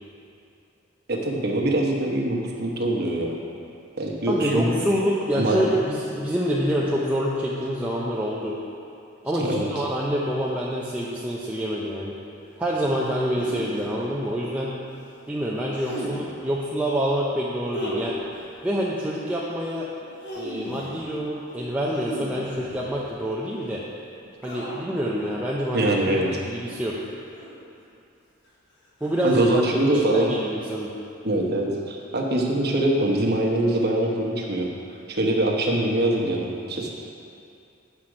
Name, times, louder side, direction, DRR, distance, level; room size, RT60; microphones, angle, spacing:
voice 1, 1.1-3.4 4.0-4.7 5.4-5.6 9.4-9.7 25.7-26.3 29.2-30.3 31.2-34.7 35.1-36.9, right 1 dB, 55° right, -1 dB, 1.1 m, -23 dB
voice 2, 4.3-8.5 9.2-12.1 12.6-14.8 15.3-18.1 18.6-19.9 20.4-23.8 24.4-26.0 26.4-27.0 29.0-29.6 30.1-30.9, equal, 5° right, -6 dB, 0.6 m, -26 dB
sound 1, 13.3-13.9 15.7-16.4 17.7-18.5 20.0-21.1 21.9-23.1 24.4-25.0 25.7-26.0 27.3-27.8 29.0-29.3, equal, 60° left, 1.3 m, -35 dB
7.8 x 5.8 x 4.9 m, 2.6 s
head